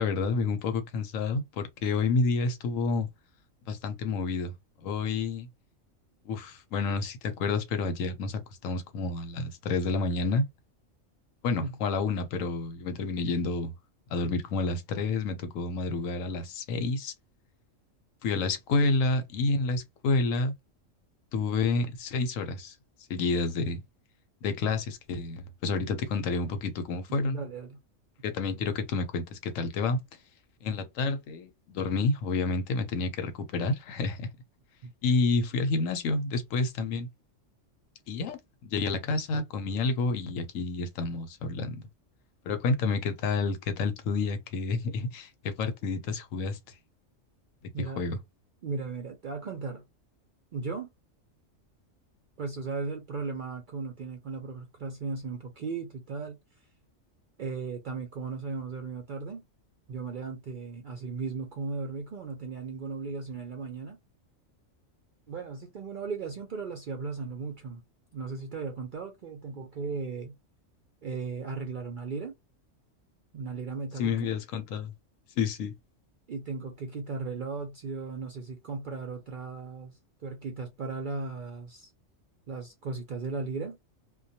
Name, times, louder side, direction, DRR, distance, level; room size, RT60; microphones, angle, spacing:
voice 1, 0.0-3.1 3.7-4.5 4.8-5.5 6.3-10.4 11.4-13.7 14.1-17.1 18.2-20.5 21.3-22.7 23.1-23.8 24.4-27.4 28.2-30.0 30.6-34.3 35.0-37.1 38.1-41.8 42.5-46.6 47.8-48.2 74.0-74.9 75.4-75.7, left 3 dB, 80° left, 1.0 m, -29 dB
voice 2, 27.1-27.8 34.8-34.9 47.7-48.1 48.6-49.8 50.5-50.9 52.4-56.4 57.4-59.4 59.9-64.0 65.3-67.8 68.1-70.3 71.0-72.3 73.3-74.3 76.3-81.9 82.5-83.8, right 4 dB, 60° right, 0.5 m, -36 dB
2.2 x 2.2 x 2.7 m
omnidirectional pair, 1.3 m